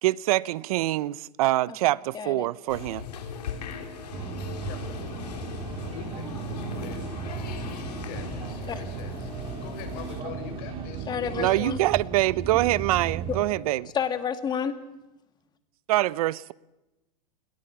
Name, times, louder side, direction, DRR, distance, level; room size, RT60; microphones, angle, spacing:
voice 1, 0.0-3.1 11.4-13.9 15.9-16.5, right 17 dB, 65° right, 0.8 m, -25 dB
voice 2, 2.1-2.5 8.7-8.8 11.1-11.8 13.9-14.7, left 7 dB, 20° left, 2.1 m, -29 dB
sound 1, 2.7-10.2, left 6 dB, 90° left, 4.1 m, -39 dB
sound 2, 4.1-13.4, right 6 dB, 30° right, 4.5 m, -36 dB
voice 3, 4.6-5.3 6.0-7.0 7.7-9.3 9.6-11.6, left 7 dB, 50° left, 6.4 m, -44 dB
29.0 x 22.0 x 6.0 m
supercardioid pair, 140°, 20 cm